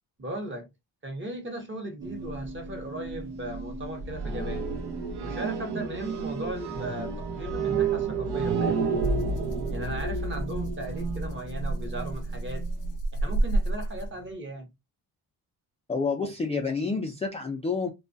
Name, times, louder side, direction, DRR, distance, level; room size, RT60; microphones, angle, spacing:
voice 1, 0.2-0.7 1.0-4.7 5.2-8.8 9.7-12.7 13.1-14.7, right 1 dB, 30° right, 0.8 m, -37 dB
sound 1, 2.0-13.0, right 4 dB, 75° right, 0.7 m, -31 dB
Rattle (instrument), 9.0-14.3, right 2 dB, 90° left, 0.6 m, -31 dB
voice 2, 15.9-17.9, left 4 dB, 15° left, 0.3 m, -29 dB
2.2 x 2.1 x 2.5 m
cardioid pair, 90°, 41 cm